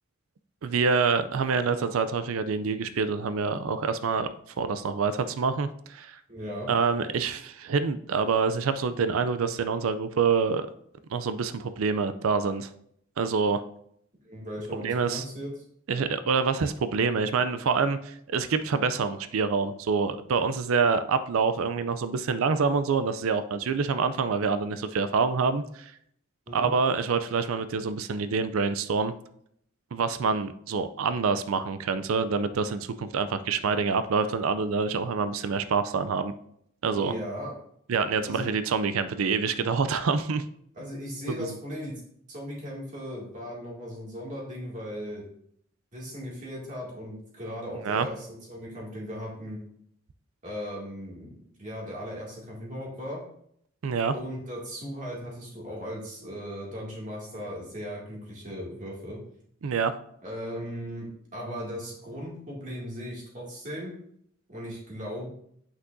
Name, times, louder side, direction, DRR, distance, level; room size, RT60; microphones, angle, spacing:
voice 1, 0.6-4.3 4.6-6.2 6.7-10.7 11.1-12.7 13.2-13.6 14.7-15.2 15.9-25.9 26.5-29.1 29.9-36.3 36.8-37.1 37.9-40.4 41.3-41.5 47.8-48.1 53.8-54.1 59.6-59.9, right 5 dB, 80° right, 12 dB, 0.4 m, -26 dB
voice 2, 6.3-6.7 14.2-15.5 26.5-26.7 36.9-37.5 38.2-38.5 40.7-42.0 42.3-45.2 45.9-49.6 50.4-53.2 54.1-59.2 60.2-63.9 64.5-65.3, equal, 40° right, -4 dB, 2.3 m, -37 dB
8.2 x 5.9 x 2.6 m, 0.69 s
head